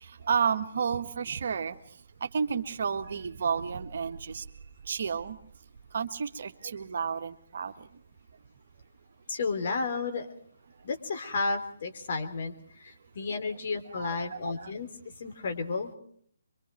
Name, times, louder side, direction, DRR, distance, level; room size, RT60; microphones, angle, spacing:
voice 1, 0.0-1.8 2.2-4.4 4.9-5.4 5.9-7.9 13.3-13.4 13.9-14.7, right 6 dB, 55° right, 8 dB, 1.6 m, -31 dB
voice 2, 9.3-10.3 10.8-14.9 15.2-15.9, left 4 dB, 50° left, 5 dB, 3.4 m, -32 dB
24.5 x 24.0 x 4.5 m, 0.62 s
figure-of-eight pair, 145°, 0 cm